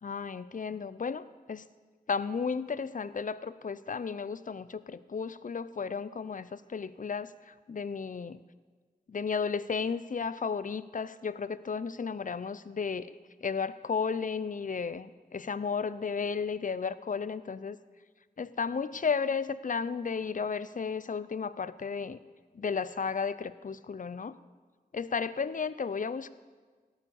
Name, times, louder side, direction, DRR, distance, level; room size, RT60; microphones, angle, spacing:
voice 1, 0.0-1.6 2.1-8.4 9.1-13.1 13.4-17.8 18.4-22.2 22.5-24.4 24.9-26.3, left 5 dB, 55° left, 15 dB, 0.6 m, -33 dB
16.5 x 7.2 x 7.0 m, 1.4 s
wide cardioid pair, 60°, 16 cm